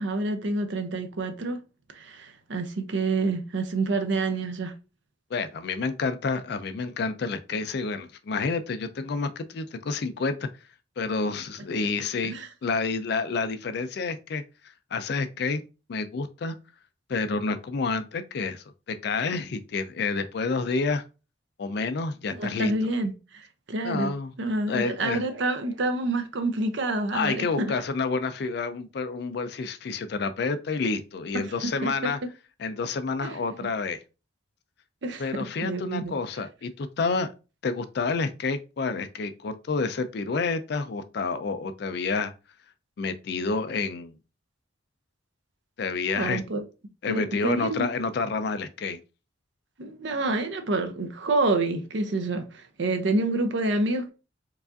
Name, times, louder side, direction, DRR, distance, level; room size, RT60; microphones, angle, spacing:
voice 1, 0.0-1.6 1.9-4.7 12.2-12.5 22.3-24.1 24.4-27.8 31.3-31.4 31.8-31.9 33.2-33.4 35.0-35.2 35.6-36.1 46.1-46.6 47.1-47.9 49.8-54.1, right 2 dB, 65° right, 0.6 m, -28 dB
voice 2, 5.3-10.5 11.0-15.6 15.9-16.5 17.1-21.0 21.6-22.7 23.8-24.3 24.7-25.2 27.1-32.2 32.6-34.0 35.2-37.3 37.6-42.3 43.0-44.1 45.8-46.4 47.0-49.0, left 4 dB, 55° left, 0.4 m, -29 dB
4.6 x 2.4 x 2.5 m
head